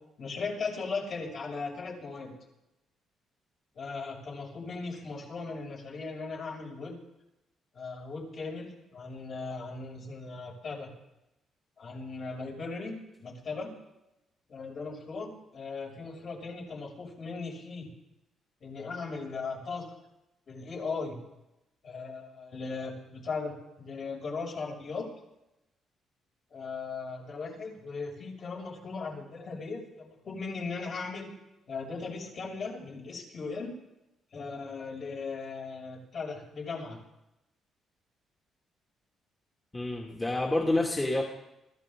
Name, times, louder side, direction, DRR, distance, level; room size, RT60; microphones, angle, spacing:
voice 1, 0.2-2.3 3.7-7.0 7.7-10.9 11.8-13.7 14.5-17.9 18.6-19.9 20.5-21.2 21.8-25.1 26.5-31.3 31.7-33.7 34.3-37.0, left 4 dB, 55° left, -1 dB, 6.5 m, -38 dB
voice 2, 39.7-41.2, left 2 dB, 15° left, 0 dB, 2.3 m, -28 dB
25.0 x 14.5 x 3.8 m, 0.91 s
cardioid pair, 90°, 0 cm